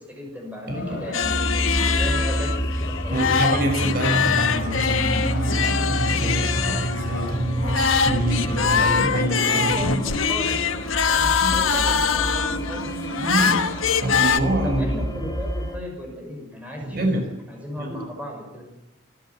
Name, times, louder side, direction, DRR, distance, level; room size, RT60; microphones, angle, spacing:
voice 1, 0.0-1.5 1.9-3.3 7.6-7.8 8.2-8.9 9.2-10.7 11.1-13.1 14.6-17.1 17.5-18.7, equal, 5° right, 0 dB, 6.0 m, -36 dB
sound 1, 0.6-7.3, left 3 dB, 60° left, 4.0 m, -38 dB
voice 2, 0.7-1.1 3.1-10.0 11.4-11.6 13.2-13.7 14.0-14.9 16.8-17.3 17.8-18.0, right 1 dB, 50° right, 3 dB, 4.9 m, -26 dB
sound 2, 1.1-14.4, left 6 dB, 90° left, 1.3 m, -23 dB
sound 3, 1.2-15.8, equal, 20° left, 3.0 m, -29 dB
26.0 x 13.0 x 9.6 m, 1.0 s
head